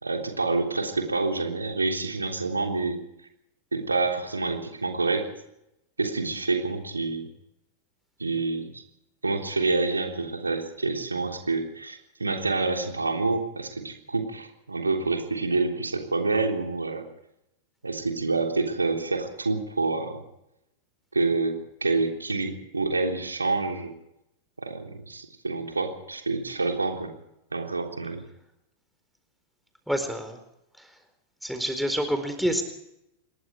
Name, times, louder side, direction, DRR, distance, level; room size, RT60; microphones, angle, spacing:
voice 1, 0.0-3.0 3.7-5.3 6.0-7.3 8.2-8.8 9.2-17.1 17.8-20.2 21.1-23.9 24.6-27.1 27.5-28.2, right 3 dB, 80° right, 3 dB, 3.6 m, -27 dB
voice 2, 29.9-30.4 30.8-31.0 31.4-32.6, equal, ahead, 7 dB, 4.3 m, -28 dB
26.5 x 22.0 x 4.7 m, 0.82 s
figure-of-eight pair, 90°, 0 cm